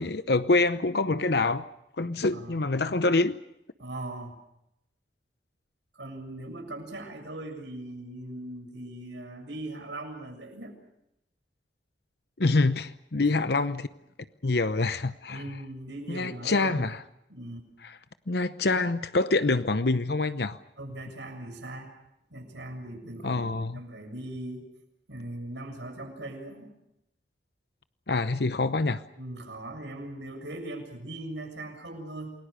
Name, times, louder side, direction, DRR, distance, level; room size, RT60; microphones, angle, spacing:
voice 1, 0.0-1.6 2.0-3.4 12.4-13.9 14.4-15.4 16.1-17.0 17.8-18.0 18.3-20.6 23.2-23.8 28.1-29.0, left 3 dB, 65° left, 12 dB, 0.8 m, -26 dB
voice 2, 3.8-4.3 5.9-10.7 13.2-13.4 15.3-16.9 17.3-17.7 20.8-21.9 22.3-24.7 25.1-26.7 29.2-32.3, right 1 dB, 85° right, 4 dB, 7.3 m, -39 dB
28.5 x 21.5 x 6.6 m, 0.83 s
head